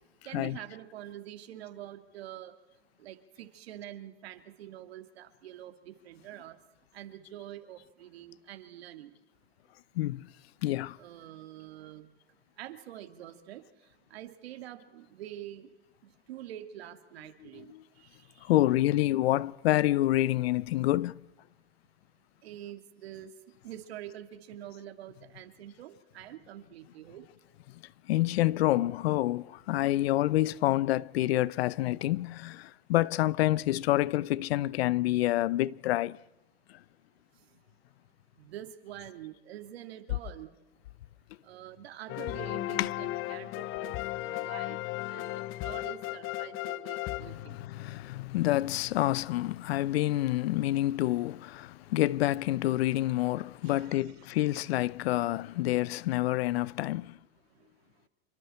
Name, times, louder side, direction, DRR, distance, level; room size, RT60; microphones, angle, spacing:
voice 1, 0.2-2.5 3.0-6.6 6.9-9.1 11.0-12.1 12.6-13.6 14.1-15.7 16.3-17.7 22.4-23.3 23.6-27.2 38.4-40.5 41.4-44.8 45.1-47.6 53.6-54.0, right 12 dB, 80° right, 2.6 m, -46 dB
voice 2, 10.0-10.3 10.6-11.0 17.4-17.8 18.4-21.2 28.1-36.2 42.8-42.9 47.2-57.2, left 15 dB, 80° left, 0.8 m, -28 dB
sound 1, 42.1-48.0, left 17 dB, 45° left, 0.6 m, -36 dB
28.0 x 25.5 x 4.4 m
hypercardioid pair, 105°, 31 cm